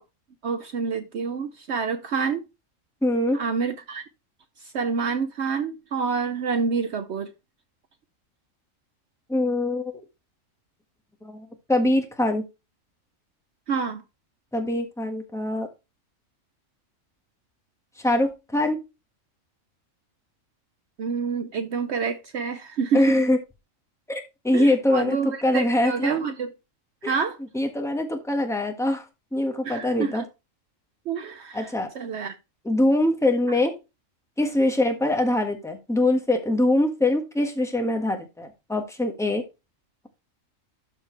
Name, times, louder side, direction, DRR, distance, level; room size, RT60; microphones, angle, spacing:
voice 1, 0.4-2.4 3.3-4.0 4.7-7.3 13.7-14.0 21.0-23.0 24.5-26.5 27.0-27.4 29.6-30.2 31.1-31.7 31.9-32.3, right 5 dB, 60° right, 0.9 m, -27 dB
voice 2, 3.0-3.4 9.3-9.9 11.2-12.4 14.5-15.7 18.0-18.8 22.9-23.4 24.1-26.1 27.0-27.1 27.5-29.0 29.3-30.2 31.5-31.9 32.6-33.7 34.4-39.5, left 1 dB, ahead, 1.4 m, -23 dB
12.5 x 4.4 x 3.2 m
omnidirectional pair, 1.4 m